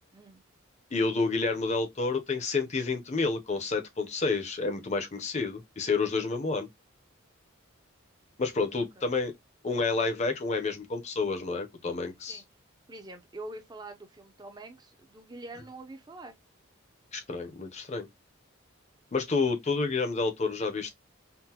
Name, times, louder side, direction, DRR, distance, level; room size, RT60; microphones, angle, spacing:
voice 1, 0.1-0.4 9.0-9.1 12.3-12.4 12.9-16.3, right 2 dB, 20° right, 0.5 m, -45 dB
voice 2, 0.9-6.7 8.4-9.3 9.6-12.4 17.1-18.1 19.1-20.9, left 4 dB, 35° left, 0.6 m, -29 dB
3.7 x 2.1 x 2.8 m
head